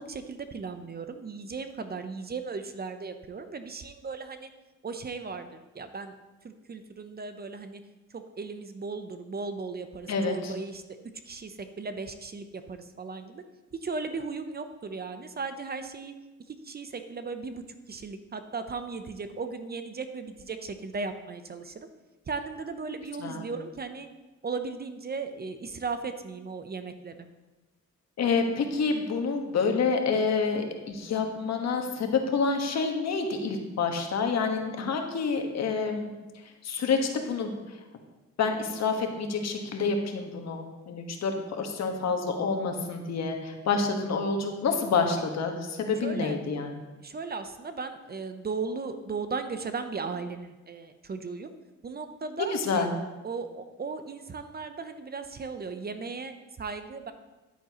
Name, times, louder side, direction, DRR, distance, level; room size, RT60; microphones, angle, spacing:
voice 1, 0.0-4.5 4.8-6.1 6.4-7.8 8.1-10.8 11.3-13.4 13.8-16.1 16.5-17.6 17.9-21.7 22.3-24.1 24.4-27.1 46.0-46.4 47.0-51.5 51.8-52.9 53.2-57.1, right 4 dB, 30° right, 9 dB, 0.7 m, -36 dB
voice 2, 10.1-10.5 23.2-23.5 28.2-36.1 36.6-37.5 38.4-46.8 52.5-52.9, left 4 dB, 60° left, 4 dB, 1.4 m, -28 dB
10.0 x 8.9 x 3.0 m, 1.1 s
cardioid pair, 90°, 30 cm